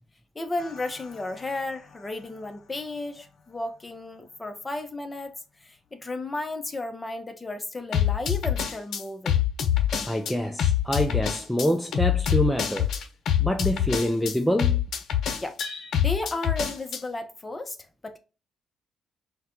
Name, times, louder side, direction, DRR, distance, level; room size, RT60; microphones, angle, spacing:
voice 1, 0.3-5.3 5.6-9.4 15.4-15.6 16.0-17.8 18.0-18.2, left 2 dB, 20° left, 0.8 m, -33 dB
sound 1, 0.6-0.9 7.9-10.3 10.6-17.0, left 10 dB, 65° left, 0.8 m, -25 dB
voice 2, 10.1-12.9 13.4-14.8, equal, 5° left, 0.5 m, -26 dB
5.6 x 2.3 x 3.1 m
cardioid pair, 90°, 0 cm